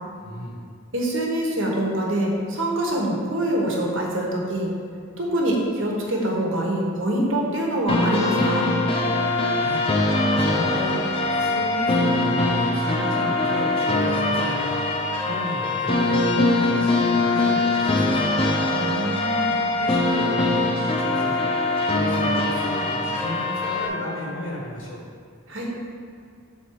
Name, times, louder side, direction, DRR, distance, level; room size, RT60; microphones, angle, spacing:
voice 1, 0.2-0.6 9.5-9.8 10.4-11.0 11.3-18.3 19.8-21.5 21.9-25.0, left 1 dB, 75° left, -4 dB, 1.6 m, -34 dB
voice 2, 0.9-4.7 5.2-8.7 18.7-19.5 25.5-25.7, right 1 dB, 65° right, -1 dB, 1.2 m, -25 dB
sound 1, 7.9-23.9, left 2 dB, 25° left, 0.5 m, -22 dB
7.0 x 4.1 x 4.7 m, 2.2 s
head